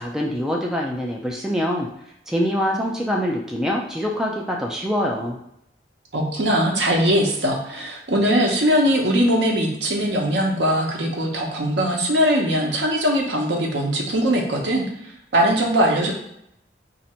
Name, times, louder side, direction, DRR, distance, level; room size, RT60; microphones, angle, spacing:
voice 1, 0.0-1.9 2.3-5.4, equal, 5° right, -2 dB, 0.4 m, -24 dB
voice 2, 6.1-14.8 15.3-16.1, equal, 70° right, 0 dB, 0.8 m, -20 dB
2.7 x 2.5 x 4.3 m, 0.77 s
head